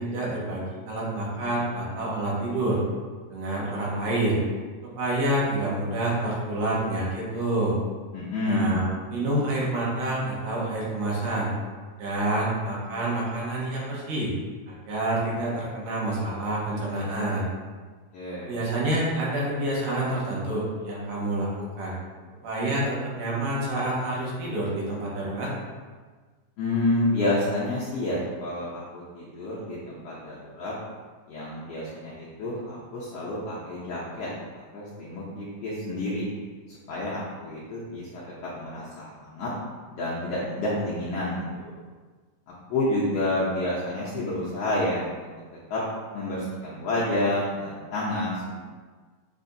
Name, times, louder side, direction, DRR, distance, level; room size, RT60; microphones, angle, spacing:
voice 1, 0.0-2.8 3.3-4.4 5.0-7.8 8.5-11.5 12.0-14.3 14.7-17.5 18.5-22.0 22.4-25.5, right 1 dB, 90° right, -5 dB, 2.6 m, -28 dB
voice 2, 8.1-8.8 18.1-18.6 26.6-30.7 31.3-34.3 34.7-36.2 36.7-39.5 39.9-41.7 42.7-45.3 45.7-45.8 46.1-48.6, left 1 dB, 80° left, -8 dB, 1.4 m, -29 dB
6.7 x 2.8 x 2.6 m, 1.4 s
omnidirectional pair, 3.6 m